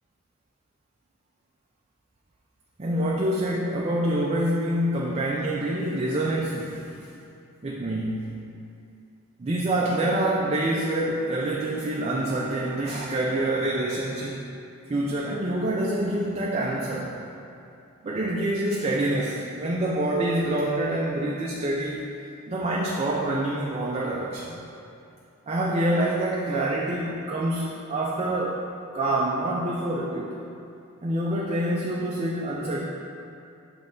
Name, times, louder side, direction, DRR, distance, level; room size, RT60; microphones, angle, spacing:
voice 1, 2.8-6.9 7.6-8.3 9.4-14.4 14.9-17.2 18.0-22.1 22.5-24.6 25.5-28.6 28.9-30.4 31.0-32.8, right 1 dB, 30° right, -4 dB, 0.4 m, -26 dB
6.2 x 3.2 x 5.2 m, 2.7 s
head